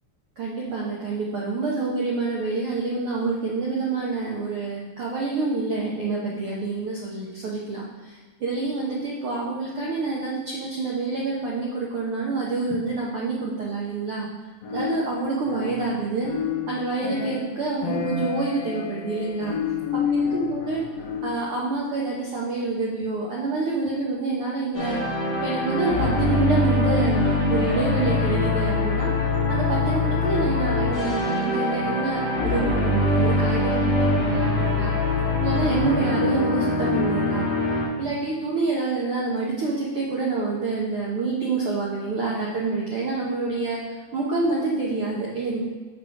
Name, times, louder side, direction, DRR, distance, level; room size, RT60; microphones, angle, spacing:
voice 1, 0.4-14.3 14.7-16.3 16.7-19.6 20.1-20.8 21.2-25.0 25.4-34.9 35.4-37.5 38.0-45.6, right 3 dB, 60° right, -5 dB, 1.6 m, -27 dB
sound 1, 14.6-21.5, left 7 dB, 70° left, 1.8 m, -30 dB
sound 2, 24.7-37.8, left 2 dB, 25° left, 2.5 m, -23 dB
7.4 x 4.9 x 4.9 m, 1.4 s
omnidirectional pair, 3.4 m